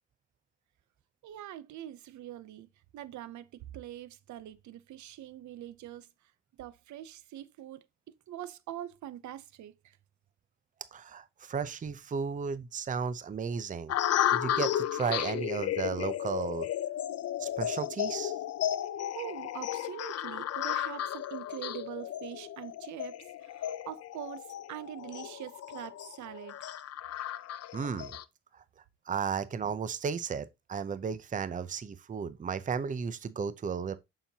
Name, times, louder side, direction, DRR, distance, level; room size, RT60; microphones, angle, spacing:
voice 1, 1.2-6.3 6.6-7.9 8.3-10.0 19.1-26.7, right 12 dB, 70° right, 0.7 m, -44 dB
voice 2, 10.9-13.9 14.3-16.7 17.4-18.3 27.7-28.2 28.5-28.6 29.1-34.0, right 6 dB, 25° right, 0.6 m, -34 dB
sound 1, 13.9-28.2, left 11 dB, 55° left, 0.6 m, -34 dB
6.9 x 5.7 x 2.8 m
cardioid pair, 90°, 30 cm